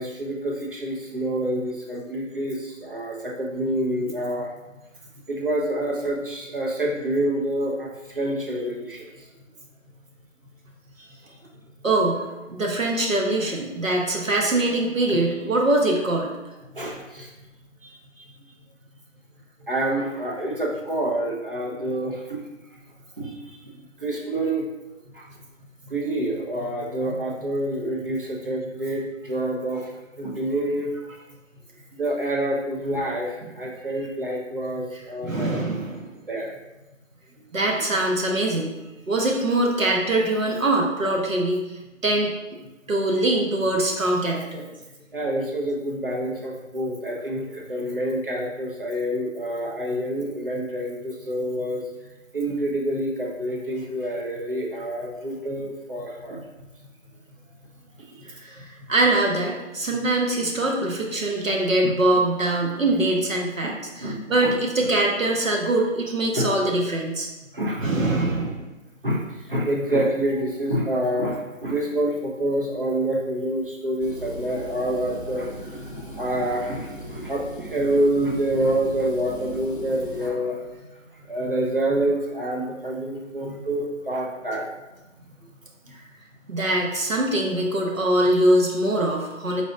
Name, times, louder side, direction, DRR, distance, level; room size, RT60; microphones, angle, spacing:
voice 1, 0.0-4.5 5.3-9.0 16.7-17.3 19.7-22.4 23.2-23.3 23.6-23.7 24.0-24.6 25.1-25.2 25.9-29.8 30.2-30.9 31.9-35.6 36.3-36.5 45.1-51.8 52.3-56.4 63.6-64.5 66.3-66.5 67.5-67.8 69.0-80.6 81.3-84.7, right 1 dB, 45° right, -2 dB, 0.8 m, -27 dB
voice 2, 11.8-16.3 35.2-36.1 37.5-38.7 39.1-41.7 42.0-42.4 42.9-44.6 58.2-67.3 67.8-68.7 86.5-89.6, right 1 dB, 80° right, 0 dB, 1.0 m, -23 dB
sound 1, 74.0-80.3, right 1 dB, 45° left, 0.4 m, -38 dB
4.0 x 2.4 x 3.8 m, 1.0 s
figure-of-eight pair, 170°, 39 cm